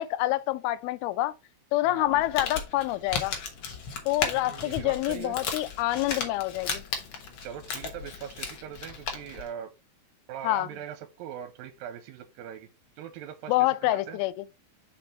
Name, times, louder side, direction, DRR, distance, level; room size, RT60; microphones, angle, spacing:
voice 1, 0.0-1.3 1.7-3.3 4.1-6.8 10.4-10.7 13.5-14.3, left 17 dB, 90° left, 2.5 m, -27 dB
voice 2, 1.9-2.3 4.3-5.4 7.4-9.7 10.3-12.7 13.0-14.2, right 9 dB, 80° right, 2.3 m, -41 dB
Crumpling crinkling, 2.1-9.5, left 5 dB, 65° left, 1.3 m, -35 dB
5.4 x 5.2 x 4.3 m
omnidirectional pair, 4.3 m